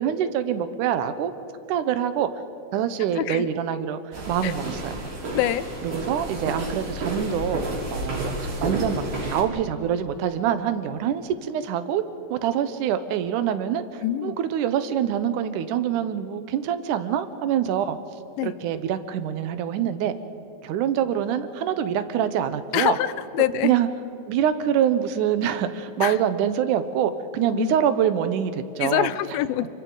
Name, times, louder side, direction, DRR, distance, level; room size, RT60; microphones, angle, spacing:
voice 1, 0.0-1.3 1.7-2.3 2.7-4.0 4.3-4.9 5.8-7.6 7.9-9.1 9.3-18.0 18.4-20.1 20.6-23.0 23.6-23.9 24.3-29.1, right 9 dB, 70° right, 10 dB, 2.2 m, -25 dB
sound 1, 4.1-9.4, right 2 dB, 45° right, 3.5 m, -30 dB
voice 2, 5.3-5.7 14.0-14.4 18.4-18.5 22.7-23.7 26.0-26.2 27.5-27.8 28.8-29.7, left 13 dB, 80° left, 14 dB, 2.4 m, -25 dB
29.5 x 23.5 x 4.0 m, 2.8 s
omnidirectional pair, 4.3 m